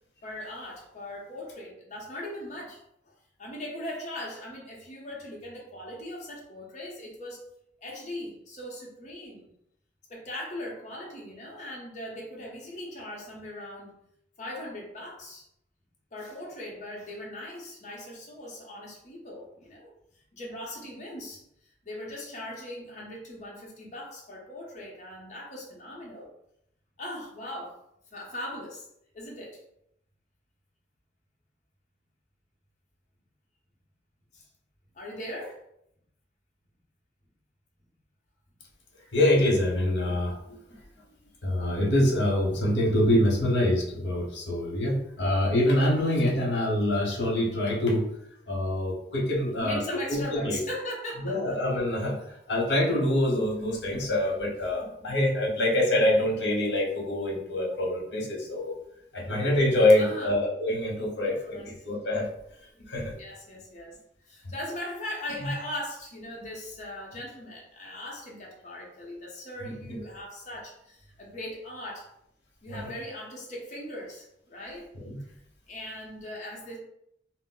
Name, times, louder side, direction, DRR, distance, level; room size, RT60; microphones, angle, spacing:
voice 1, 0.2-3.1 3.4-7.4 7.8-9.5 10.1-13.9 14.4-15.4 16.1-19.9 20.3-21.4 21.8-26.3 27.0-27.8 28.1-28.9 29.1-29.6 34.3-34.5 34.9-35.6 49.5-51.6 59.9-60.3 61.4-61.7 63.0-64.0 64.3-72.1 72.6-74.9 75.7-76.8, left 1 dB, 40° left, -3 dB, 0.7 m, -39 dB
voice 2, 39.1-40.6 41.4-48.1 48.5-50.6 51.1-52.2 52.5-58.7 59.1-62.3 62.9-63.1 65.4-65.6 69.6-70.0 72.7-72.9 74.9-75.2, left 1 dB, 80° left, -1 dB, 0.8 m, -25 dB
2.2 x 2.0 x 3.7 m, 0.76 s
head